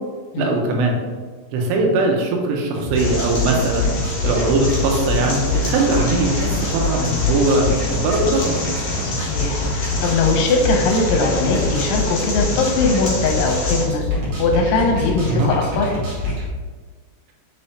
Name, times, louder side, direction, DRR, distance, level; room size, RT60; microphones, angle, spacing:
voice 1, 0.4-0.9 1.5-3.9 4.2-8.6 15.3-15.5, right 2 dB, 85° right, 1 dB, 3.4 m, -20 dB
sound 1, 2.7-16.5, left 2 dB, 60° right, 1.6 m, -25 dB
sound 2, 2.9-13.8, left 2 dB, 55° left, 2.6 m, -29 dB
voice 2, 9.0-14.0 14.4-15.9, left 3 dB, 80° left, 1 dB, 2.9 m, -20 dB
7.0 x 5.4 x 2.8 m, 1.5 s
omnidirectional pair, 5.6 m